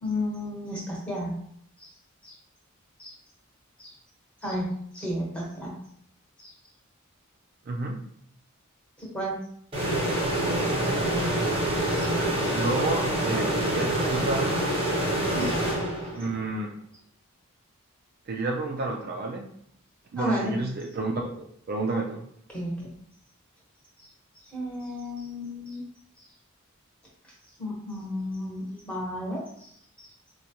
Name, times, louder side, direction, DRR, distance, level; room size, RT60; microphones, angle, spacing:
voice 1, 0.0-1.3 1.8-1.9 2.2-2.4 3.0-3.1 3.8-3.9 4.4-5.8 6.4-6.5 9.0-9.4 12.0-12.1 15.3-15.6 20.1-20.5 22.5-22.9 24.0-24.1 24.3-25.8 27.6-29.7 30.0-30.1, equal, 5° left, -5 dB, 1.0 m, -33 dB
voice 2, 7.7-8.0 12.1-14.5 16.1-16.8 18.3-19.5 20.1-21.3 21.7-22.2, right 2 dB, 45° right, 1 dB, 0.3 m, -30 dB
sound 1, 9.7-16.4, right 1 dB, 25° right, 0.9 m, -26 dB
4.5 x 2.3 x 2.8 m, 0.66 s
head